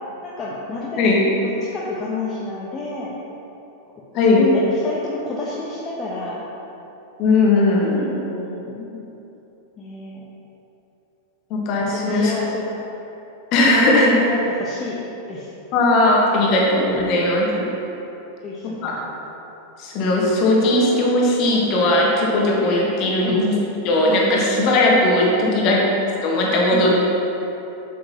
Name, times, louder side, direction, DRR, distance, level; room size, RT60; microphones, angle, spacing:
voice 1, 0.2-1.0 1.4-3.2 4.3-6.4 7.8-9.0 9.8-10.2 11.8-12.8 13.7-15.0 15.3-15.5 18.4-19.1 23.2-23.5 25.4-25.7 26.7-26.9, left 3 dB, 25° left, -6 dB, 0.9 m, -29 dB
voice 2, 4.1-4.5 7.2-8.1 11.5-12.3 13.5-14.1 15.7-17.7 18.6-19.0 19.8-23.5 23.8-25.8 26.2-26.9, left 2 dB, 40° left, -2 dB, 1.5 m, -18 dB
8.1 x 7.5 x 2.9 m, 3.0 s
figure-of-eight pair, 90°, 0 cm